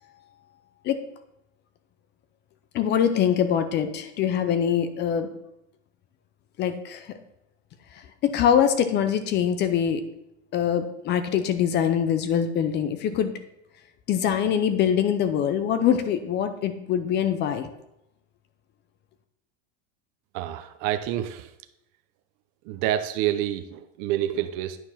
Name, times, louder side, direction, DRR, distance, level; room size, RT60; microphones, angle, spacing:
voice 1, 2.7-5.3 6.6-7.2 7.9-10.0 10.5-13.3 14.1-17.7, left 8 dB, 30° left, 10 dB, 0.6 m, -24 dB
voice 2, 20.3-21.5 22.7-24.8, right 12 dB, 45° right, 9 dB, 0.7 m, -28 dB
9.3 x 4.8 x 5.6 m, 0.83 s
supercardioid pair, 155°, 36 cm